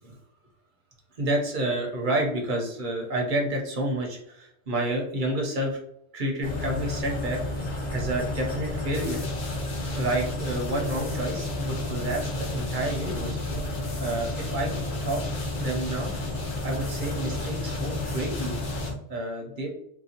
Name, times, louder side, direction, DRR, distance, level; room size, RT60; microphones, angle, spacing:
voice 1, 1.2-5.8 6.1-7.4 7.9-9.2 9.9-13.4 14.0-14.7 15.0-15.2 15.5-16.1 16.6-18.6 19.1-19.7, right 1 dB, 50° right, 0 dB, 0.9 m, -29 dB
sound 1, 6.4-18.9, left 2 dB, 30° left, 1.3 m, -31 dB
sound 2, 8.9-18.9, left 3 dB, 70° left, 1.2 m, -43 dB
3.8 x 2.3 x 2.8 m, 0.75 s
omnidirectional pair, 1.1 m